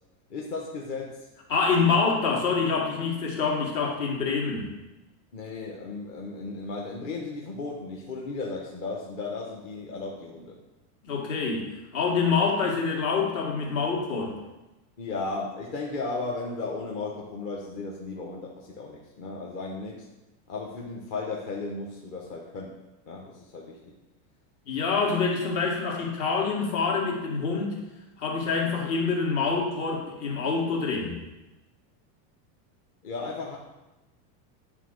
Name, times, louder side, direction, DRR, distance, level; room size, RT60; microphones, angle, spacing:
voice 1, 0.3-1.3 1.9-2.0 5.3-10.6 15.0-20.1 20.5-22.7 23.0-23.8 33.0-33.6, left 3 dB, 30° left, -3 dB, 0.9 m, -35 dB
voice 2, 1.5-4.7 11.0-14.4 24.7-27.8 28.2-31.2, left 5 dB, 50° left, -1 dB, 2.1 m, -26 dB
9.2 x 3.8 x 6.3 m, 1.0 s
supercardioid pair, 180°, 48 cm